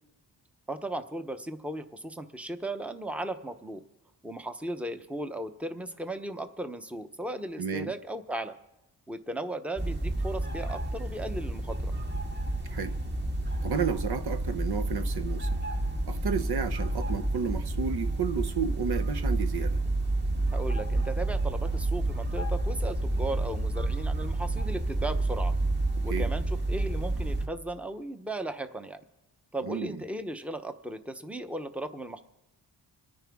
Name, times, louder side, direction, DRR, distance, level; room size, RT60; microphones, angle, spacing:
voice 1, 0.7-3.8 4.2-8.5 9.1-11.9 20.5-25.6 26.0-29.0 29.5-32.2, right 1 dB, 5° right, 0.9 m, -36 dB
voice 2, 7.6-7.9 12.7-13.0 13.6-15.6 16.1-19.8 26.1-26.3 29.6-30.0, right 6 dB, 60° right, 0.8 m, -32 dB
sound 1, 9.8-27.5, right 2 dB, 25° right, 1.5 m, -30 dB
26.5 x 9.9 x 3.6 m
cardioid pair, 80°, 43 cm